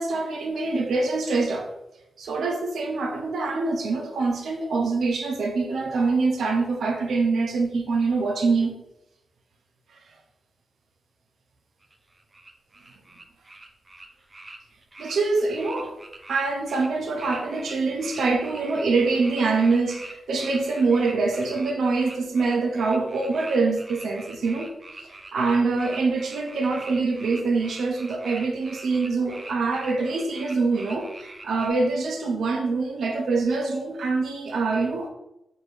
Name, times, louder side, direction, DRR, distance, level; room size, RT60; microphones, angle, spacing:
voice 1, 0.0-1.7 2.2-8.7 15.0-15.9 16.3-24.7 25.0-35.1, right 3 dB, 85° right, 2 dB, 0.6 m, -24 dB
sound 1, 11.8-31.7, right 2 dB, 20° right, 0.4 m, -43 dB
4.7 x 2.6 x 3.1 m, 0.91 s
wide cardioid pair, 160°, 0 cm